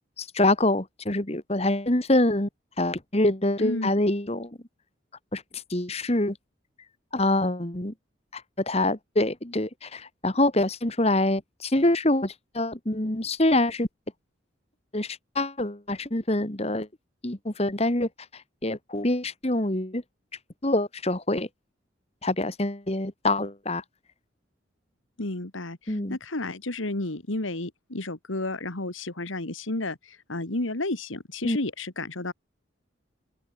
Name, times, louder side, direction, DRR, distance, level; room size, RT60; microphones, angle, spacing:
voice 1, 0.2-2.5 2.8-4.6 5.3-6.4 7.1-7.9 8.3-13.9 14.9-16.9 17.2-20.0 20.6-21.5 22.2-23.8 25.9-26.2 31.4-31.6, left 1 dB, 30° left, 1.9 m, -25 dB
voice 2, 3.6-4.0 25.2-32.3, left 2 dB, 90° left, 2.4 m, -32 dB
open air
head